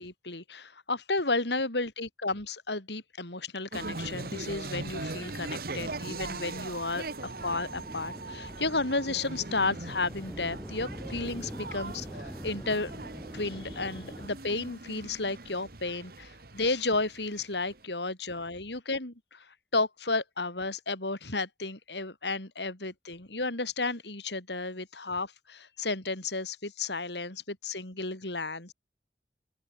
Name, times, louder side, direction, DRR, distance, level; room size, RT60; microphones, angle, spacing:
voice 1, 0.0-12.9 13.3-19.5 19.7-28.7, left 3 dB, 75° left, 4.5 m, -33 dB
sound 1, 3.7-17.8, right 2 dB, 55° right, 1.9 m, -40 dB
sound 2, 7.3-14.3, equal, ahead, 4.6 m, -44 dB
open air
head